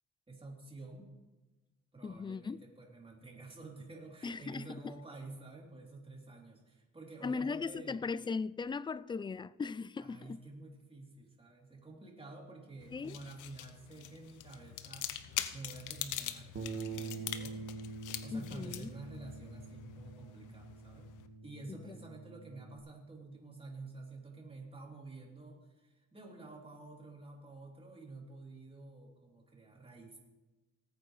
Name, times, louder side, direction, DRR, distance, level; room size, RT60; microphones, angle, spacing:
voice 1, 0.3-1.1 1.9-8.0 10.0-15.1 15.5-17.7 18.2-21.1 21.4-30.2, right 3 dB, 20° right, 3.3 m, -50 dB
voice 2, 2.0-2.6 4.2-4.9 7.2-10.4 12.9-13.2 18.3-18.9 21.9-22.0, left 4 dB, 15° left, 0.3 m, -38 dB
aluminium-pills, 12.8-21.3, left 12 dB, 90° left, 0.8 m, -44 dB
Bass guitar, 16.5-22.8, right 4 dB, 45° right, 1.6 m, -45 dB
18.5 x 9.0 x 3.2 m
cardioid pair, 90°, 30 cm